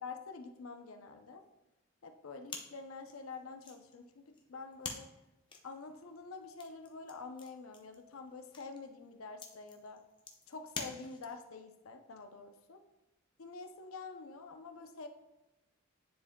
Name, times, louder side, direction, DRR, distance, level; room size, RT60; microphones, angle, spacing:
voice 1, 0.0-1.4 2.0-5.1 5.6-10.0 10.5-12.8 13.4-15.1, left 4 dB, 80° left, 6 dB, 0.6 m, -47 dB
sound 1, 2.5-11.5, left 4 dB, 25° left, 0.6 m, -49 dB
9.9 x 4.6 x 2.2 m, 0.99 s
head